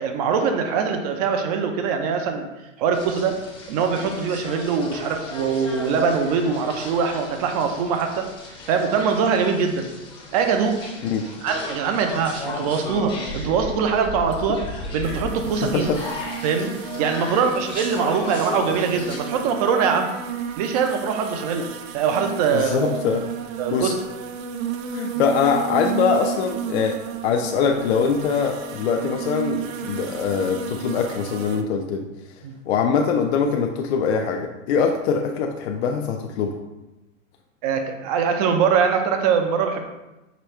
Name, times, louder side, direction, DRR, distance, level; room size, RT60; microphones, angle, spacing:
voice 1, 0.0-2.5 2.8-3.4 3.7-8.3 8.7-9.9 10.3-10.8 11.4-14.6 14.9-15.9 16.4-16.7 17.0-20.1 20.6-21.7 21.9-23.0 23.6-24.0 32.4-32.5 37.6-39.8, right 6 dB, 30° right, 5 dB, 0.4 m, -22 dB
sound 1, 2.9-19.2, left 2 dB, 15° left, 0.6 m, -35 dB
sound 2, 15.0-31.6, right 9 dB, 80° right, 0.6 m, -33 dB
voice 2, 15.6-16.0 22.5-23.2 23.7-23.9 24.9-27.0 27.2-32.1 32.7-36.6, left 6 dB, 55° left, 2 dB, 0.5 m, -23 dB
5.0 x 2.3 x 4.3 m, 1.0 s
hypercardioid pair, 145°, 40 cm